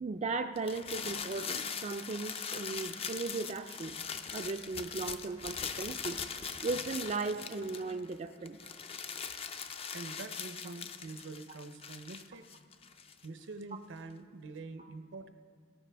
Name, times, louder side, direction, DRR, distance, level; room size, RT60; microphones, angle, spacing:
voice 1, 0.0-4.0 4.3-6.2 6.6-8.6 14.8-14.9, right 3 dB, 35° right, 6 dB, 0.3 m, -37 dB
sound 1, 0.6-8.1 8.5-13.3, left 6 dB, 30° left, 0.4 m, -41 dB
voice 2, 9.9-12.4 13.2-15.3, right 3 dB, 75° right, 9 dB, 0.6 m, -45 dB
17.5 x 13.5 x 3.4 m, 2.3 s
head